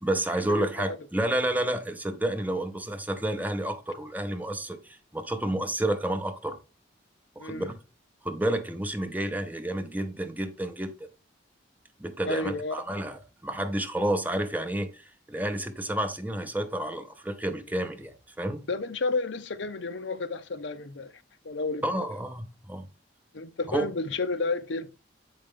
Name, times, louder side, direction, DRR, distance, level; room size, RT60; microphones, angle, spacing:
voice 1, 0.0-6.6 7.4-7.8 8.2-10.9 12.0-18.6 21.8-22.9 23.7-23.9, right 1 dB, 10° right, 0.7 m, -30 dB
voice 2, 0.6-1.0 7.4-7.7 12.3-12.8 18.7-21.1 21.4-21.9 23.3-24.9, left 3 dB, 75° left, 0.7 m, -31 dB
7.9 x 5.1 x 3.6 m
head